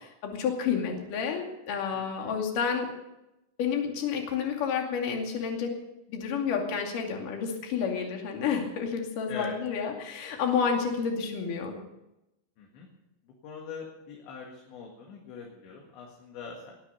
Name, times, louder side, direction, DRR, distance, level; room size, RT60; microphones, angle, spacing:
voice 1, 0.0-2.9 3.6-5.7 6.1-11.8, left 6 dB, 50° left, 1 dB, 3.5 m, -30 dB
voice 2, 1.9-2.4 9.3-9.6 12.6-12.9 13.3-16.8, left 5 dB, 65° left, -1 dB, 4.1 m, -42 dB
19.0 x 10.0 x 7.0 m, 0.92 s
omnidirectional pair, 5.8 m